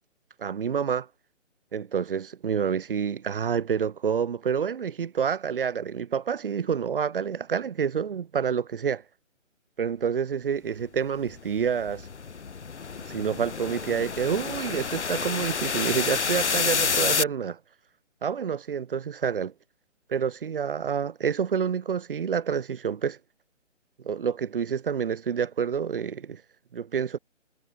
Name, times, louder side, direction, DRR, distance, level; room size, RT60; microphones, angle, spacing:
voice 1, 0.4-1.1 1.7-9.0 9.8-12.1 13.1-17.6 18.2-19.5 20.1-23.2 24.0-26.4 26.7-27.2, right 7 dB, 45° right, 0.9 m, -28 dB
sound 1, 11.2-17.2, left 5 dB, 60° left, 5.0 m, -29 dB
hypercardioid pair, 160°, 38 cm